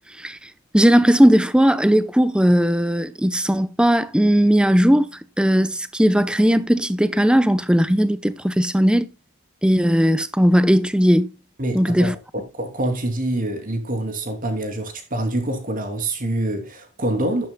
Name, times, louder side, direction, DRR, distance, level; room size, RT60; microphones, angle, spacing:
voice 1, 0.7-5.1 5.4-9.1 9.6-11.3 11.7-12.1, equal, 5° right, 0.7 m, -17 dB
voice 2, 11.6-17.5, right 1 dB, 40° right, 2.9 m, -26 dB
11.5 x 11.0 x 2.3 m
head